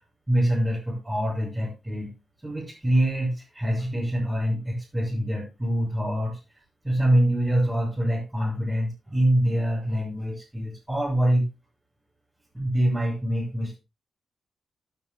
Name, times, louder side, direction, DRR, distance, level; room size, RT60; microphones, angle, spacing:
voice 1, 0.3-2.1 2.4-6.4 6.8-11.5 12.5-13.8, right 1 dB, 10° right, -5 dB, 6.5 m, -25 dB
16.5 x 9.3 x 2.3 m, 0.27 s
wide cardioid pair, 140°, 0 cm